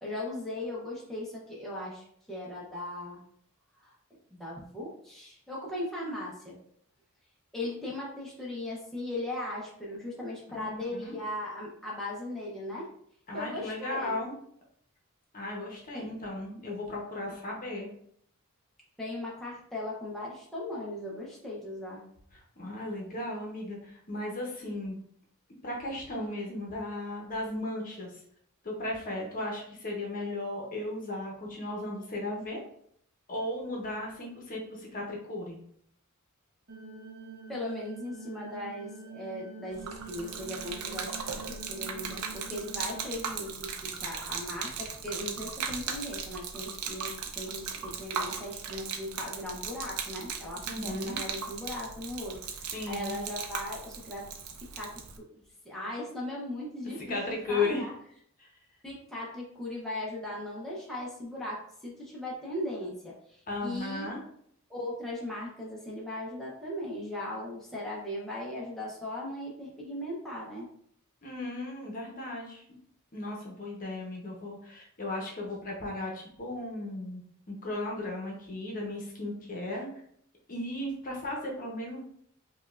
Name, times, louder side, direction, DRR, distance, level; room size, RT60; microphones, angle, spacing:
voice 1, 0.0-3.2 3.8-6.6 7.5-12.9 13.3-14.2 15.9-16.1 17.3-17.4 19.0-22.0 37.5-54.3 54.6-57.9 58.8-64.1 64.7-70.7, left 1 dB, ahead, -6 dB, 0.7 m, -38 dB
voice 2, 10.5-11.1 13.3-14.3 15.3-17.9 22.3-25.0 25.6-28.2 28.6-32.6 33.3-35.6 50.6-51.2 52.7-53.2 57.1-57.9 58.4-58.5 63.5-64.2 71.2-72.6 73.1-79.9 80.5-82.0, left 2 dB, 40° left, -1 dB, 0.8 m, -36 dB
sound 1, 36.7-43.1, right 3 dB, 55° right, 0.9 m, -46 dB
Gurgling / Liquid, 39.7-55.2, right 6 dB, 80° right, 0.5 m, -38 dB
5.1 x 2.4 x 2.4 m, 0.66 s
head